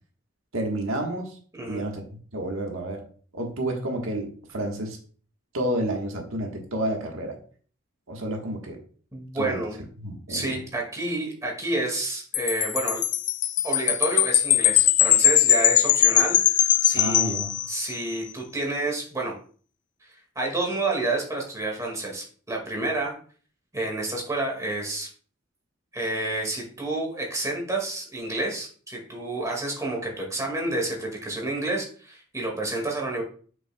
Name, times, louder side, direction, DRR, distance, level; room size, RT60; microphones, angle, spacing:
voice 1, 0.5-1.4 1.7-2.0 2.3-3.0 3.3-5.0 5.5-7.4 8.1-8.8 9.3-9.6 10.0-10.6 17.0-17.5, right 1 dB, 85° right, 1 dB, 1.5 m, -30 dB
voice 2, 9.1-9.8 10.3-13.0 13.6-17.3 17.7-19.3 20.0-23.1 23.7-25.1 25.9-33.2, right 2 dB, 15° right, 0 dB, 2.0 m, -29 dB
Wind chime, 12.3-18.0, left 11 dB, 40° left, 0.4 m, -21 dB
7.8 x 6.2 x 2.3 m, 0.43 s
head